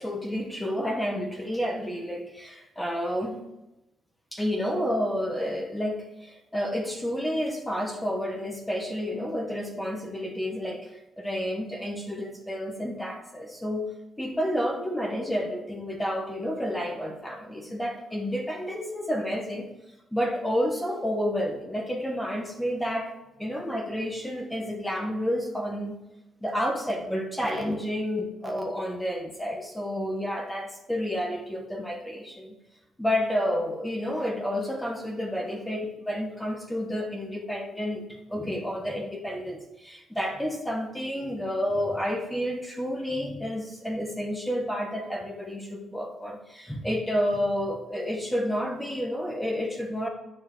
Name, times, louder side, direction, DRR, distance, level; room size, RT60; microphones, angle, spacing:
voice 1, 0.0-3.4 4.3-13.8 14.2-19.7 20.1-23.1 23.4-26.0 26.4-32.5 33.0-50.1, equal, 5° left, 2 dB, 1.1 m, -30 dB
9.5 x 4.5 x 4.6 m, 0.94 s
cardioid pair, 125°, 0 cm